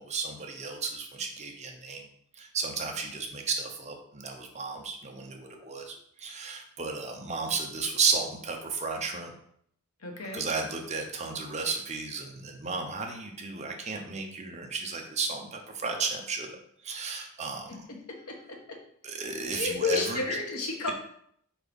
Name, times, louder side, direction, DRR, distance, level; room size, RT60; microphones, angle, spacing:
voice 1, 0.0-2.1 2.4-9.3 10.3-16.5 16.8-17.8 19.0-20.2, right 4 dB, 30° right, 2 dB, 0.9 m, -33 dB
voice 2, 10.0-10.5 17.9-18.0 18.3-18.8 19.5-20.9, left 4 dB, 85° left, 2 dB, 1.3 m, -31 dB
4.8 x 4.4 x 5.3 m, 0.68 s
head